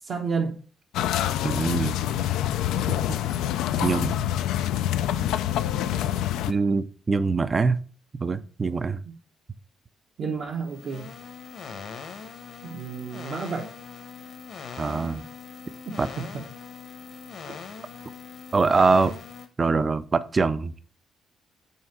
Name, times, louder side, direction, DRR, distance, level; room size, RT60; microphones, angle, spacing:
voice 1, 0.0-0.6 2.9-3.2 3.7-4.0 10.2-11.1 12.6-13.7 15.8-16.0 17.5-17.6, right 5 dB, 60° right, -1 dB, 0.8 m, -31 dB
sound 1, 0.9-6.5, left 12 dB, 90° left, 0.3 m, -26 dB
voice 2, 1.4-2.0 3.8-4.3 6.5-7.8 8.2-9.0 14.8-15.2 16.0-16.1 18.5-19.2 19.6-20.7, right 4 dB, 30° right, 14 dB, 0.4 m, -23 dB
sound 2, 10.5-19.5, left 5 dB, 60° left, 1.0 m, -41 dB
5.7 x 3.6 x 4.6 m, 0.39 s
cardioid pair, 90°, 0 cm